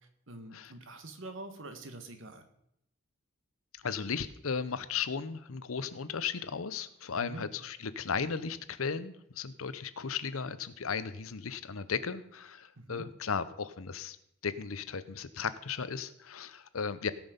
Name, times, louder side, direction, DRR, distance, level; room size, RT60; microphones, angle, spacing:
voice 1, 0.3-2.5 7.1-7.4 12.8-13.1, right 2 dB, 65° right, 7 dB, 1.5 m, -45 dB
voice 2, 3.8-14.2 14.4-17.1, left 6 dB, 85° left, 14 dB, 0.8 m, -36 dB
17.5 x 6.1 x 5.2 m, 0.77 s
head